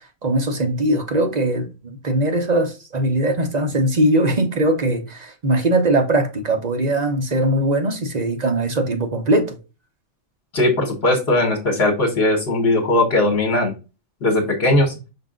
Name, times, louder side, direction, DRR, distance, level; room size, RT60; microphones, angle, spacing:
voice 1, 0.0-9.6, right 1 dB, 40° right, 0.8 m, -20 dB
voice 2, 10.5-13.7 14.2-14.9, left 2 dB, 55° left, 1.4 m, -18 dB
5.6 x 2.5 x 3.7 m
omnidirectional pair, 1.3 m